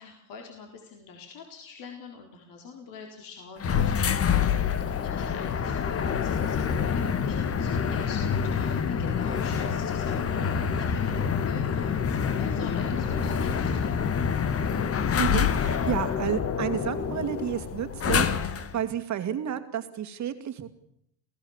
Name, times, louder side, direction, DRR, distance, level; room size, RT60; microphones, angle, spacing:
voice 1, 0.0-14.2, left 5 dB, 50° left, 2 dB, 4.2 m, -45 dB
sound 1, 3.6-18.8, left 7 dB, 35° left, 1.8 m, -27 dB
voice 2, 15.2-20.7, right 9 dB, 40° right, 9 dB, 2.4 m, -31 dB
27.5 x 16.5 x 7.3 m, 0.76 s
supercardioid pair, 100°, 41 cm